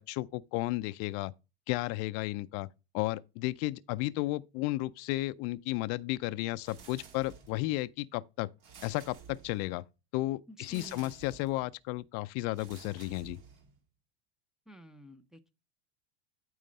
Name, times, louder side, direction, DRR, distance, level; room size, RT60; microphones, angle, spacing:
voice 1, 0.0-1.3 1.7-2.7 2.9-8.5 8.8-9.8 10.1-13.4, left 19 dB, 50° left, 0.5 m, -33 dB
sound 1, 6.6-7.7 8.6-9.8 10.6-11.7 12.5-13.8, right 6 dB, 60° right, 2.9 m, -53 dB
voice 2, 10.5-11.2 14.7-15.5, equal, ahead, 0.7 m, -51 dB
9.1 x 3.1 x 6.6 m
hypercardioid pair, 110°, 33 cm